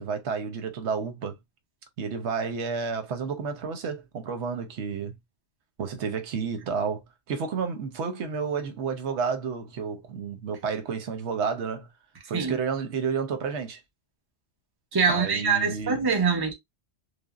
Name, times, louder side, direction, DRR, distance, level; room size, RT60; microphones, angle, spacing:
voice 1, 0.0-1.4 2.0-5.2 5.8-11.9 12.3-13.8 15.1-16.1, right 5 dB, 85° right, 1.0 m, -31 dB
voice 2, 14.9-16.5, right 5 dB, 25° right, 0.7 m, -24 dB
3.3 x 2.1 x 2.4 m
omnidirectional pair, 1.1 m